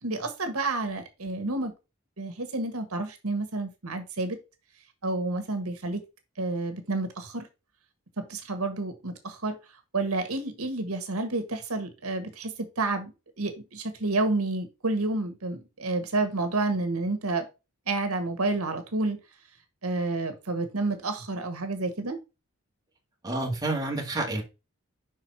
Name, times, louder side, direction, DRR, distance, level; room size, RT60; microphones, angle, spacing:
voice 1, 0.0-1.7 2.2-4.4 5.0-6.0 6.4-7.5 8.2-9.6 9.9-17.5 17.9-19.2 19.8-22.2, right 2 dB, 85° right, 1.5 m, -30 dB
voice 2, 23.2-24.4, right 2 dB, 15° right, 1.8 m, -29 dB
5.6 x 4.7 x 5.5 m
head